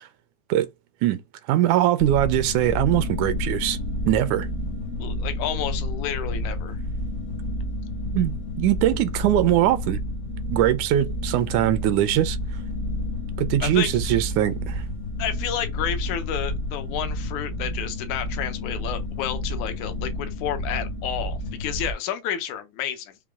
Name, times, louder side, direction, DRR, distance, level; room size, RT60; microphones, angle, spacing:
voice 1, 1.5-3.8 4.1-4.5 8.1-10.0 10.5-12.4 13.4-14.8, right 13 dB, 80° right, 2.0 m, -21 dB
sound 1, 2.0-21.9, left 1 dB, 55° left, 1.0 m, -30 dB
voice 2, 5.0-6.8 13.6-14.2 15.2-23.2, left 9 dB, 75° left, 2.1 m, -31 dB
5.8 x 2.3 x 3.5 m
omnidirectional pair, 3.5 m